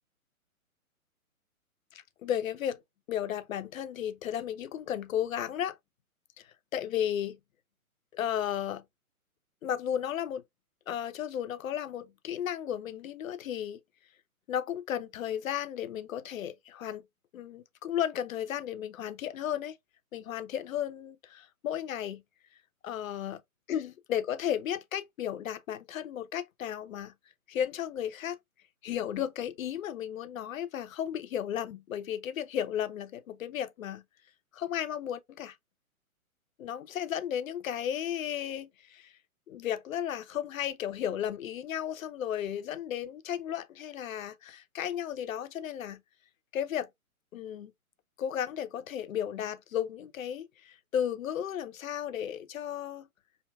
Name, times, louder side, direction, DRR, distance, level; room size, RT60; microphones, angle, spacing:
voice 1, 1.9-2.8 3.1-5.8 6.4-7.4 8.1-8.8 9.6-10.4 10.9-13.8 14.5-17.0 17.3-19.8 20.1-22.2 22.8-23.4 23.7-27.1 27.5-28.4 28.8-34.0 34.5-35.6 36.6-39.1 39.5-46.0 46.5-46.9 47.3-47.7 48.2-53.1, left 10 dB, 65° left, 0.6 m, -34 dB
4.5 x 2.7 x 2.2 m
hypercardioid pair, 135°, 44 cm